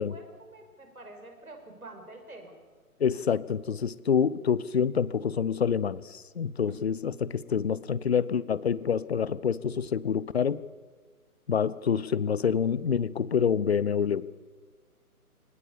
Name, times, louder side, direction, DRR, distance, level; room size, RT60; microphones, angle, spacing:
voice 1, 0.0-2.6, right 2 dB, 70° right, 5.9 m, -47 dB
voice 2, 3.0-10.6 11.5-14.3, left 7 dB, 45° left, 0.7 m, -27 dB
Keyboard (musical), 6.7-10.3, right 12 dB, 10° right, 1.0 m, -58 dB
23.5 x 20.0 x 7.1 m
figure-of-eight pair, 140°, 44 cm